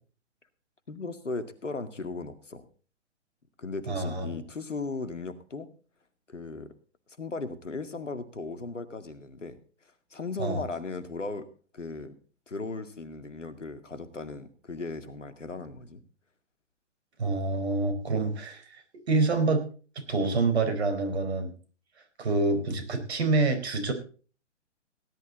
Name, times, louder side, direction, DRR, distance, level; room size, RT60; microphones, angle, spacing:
voice 1, 0.9-2.6 3.6-5.7 6.3-6.7 7.2-9.6 10.1-11.5 11.7-12.2 12.5-16.0, left 3 dB, 85° left, 11 dB, 2.2 m, -37 dB
voice 2, 3.9-4.4 10.4-10.6 17.2-19.7 20.0-21.5 22.2-23.9, right 3 dB, 60° right, 8 dB, 4.5 m, -27 dB
18.0 x 11.5 x 4.0 m, 0.39 s
figure-of-eight pair, 125°, 36 cm